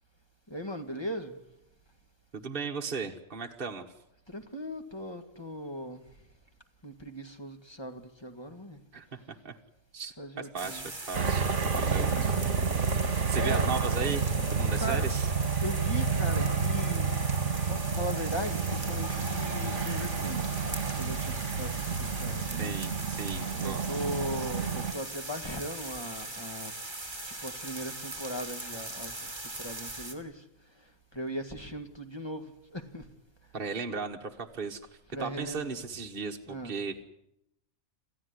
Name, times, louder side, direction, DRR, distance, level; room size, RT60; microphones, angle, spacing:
voice 1, 0.5-1.4 4.3-6.0 6.8-8.8 10.2-10.9 11.8-12.3 13.3-13.7 14.7-15.1 15.6-17.2 17.5-22.8 23.6-26.7 27.2-29.3 29.6-30.4 31.1-33.1 35.1-35.8 36.5-36.8, equal, 20° left, 6 dB, 2.0 m, -38 dB
voice 2, 2.3-3.9 8.9-9.6 9.9-12.5 13.3-15.3 22.6-23.9 33.5-34.8 35.2-37.0, right 5 dB, 40° right, 2 dB, 1.5 m, -36 dB
sound 1, 10.6-30.1, right 2 dB, 20° right, 2.9 m, -40 dB
sound 2, 11.1-24.9, right 5 dB, 60° right, 1.8 m, -30 dB
27.5 x 15.0 x 9.8 m, 0.81 s
omnidirectional pair, 1.4 m